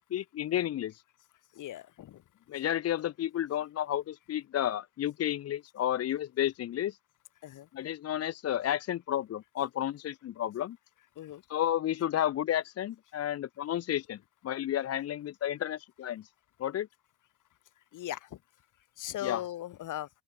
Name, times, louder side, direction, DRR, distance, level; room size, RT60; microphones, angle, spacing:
voice 1, 0.1-1.0 2.5-7.0 7.7-10.8 11.5-14.2 14.4-16.3 16.6-16.9 19.2-19.4, left 11 dB, 50° left, 0.7 m, -31 dB
voice 2, 1.5-2.2 7.4-7.7 11.2-11.4 17.9-18.4 19.0-20.1, left 13 dB, 65° left, 2.5 m, -38 dB
open air
cardioid pair, 140°, 33 cm